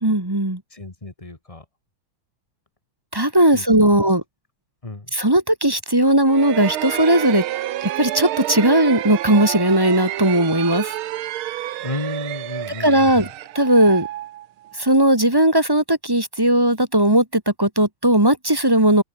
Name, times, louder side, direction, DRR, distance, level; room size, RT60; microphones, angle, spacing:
voice 1, 0.0-0.6 3.1-4.2 5.1-7.4 8.0-10.9 12.8-13.3 13.5-14.1 14.8-19.0, right 1 dB, 10° right, 1.7 m, -17 dB
voice 2, 0.7-1.6 3.5-3.7 4.8-5.1 11.8-13.3, left 2 dB, 15° left, 2.0 m, -32 dB
sound 1, 6.3-14.9, right 13 dB, 90° right, 1.7 m, -29 dB
open air
omnidirectional pair, 2.2 m